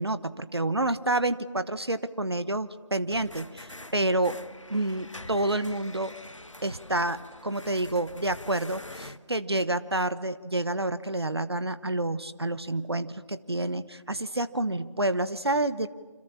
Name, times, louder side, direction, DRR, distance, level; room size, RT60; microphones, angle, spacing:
voice 1, 0.0-4.4 4.7-6.1 6.6-15.9, right 2 dB, 55° right, 13 dB, 1.1 m, -29 dB
sound 1, 3.1-9.2, left 1 dB, 75° left, 1.6 m, -45 dB
28.0 x 26.5 x 7.3 m, 1.4 s
figure-of-eight pair, 170°, 16 cm